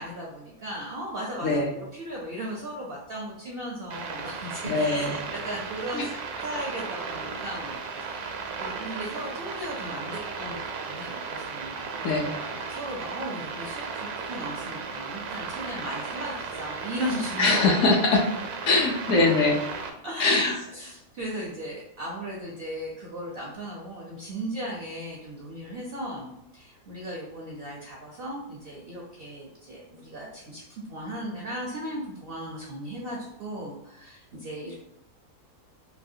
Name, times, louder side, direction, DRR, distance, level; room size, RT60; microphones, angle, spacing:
voice 1, 0.0-6.1 6.4-12.1 12.5-17.8 20.0-30.6 30.9-34.7, equal, 65° right, -3 dB, 0.6 m, -36 dB
sound 1, 3.9-19.9, right 5 dB, 85° right, 1.1 m, -35 dB
voice 2, 4.6-5.1 5.9-6.0 12.0-12.3 17.4-18.2 18.6-19.6 20.2-20.6, left 3 dB, 65° left, 0 dB, 0.9 m, -22 dB
3.2 x 2.7 x 2.6 m, 0.84 s
omnidirectional pair, 1.5 m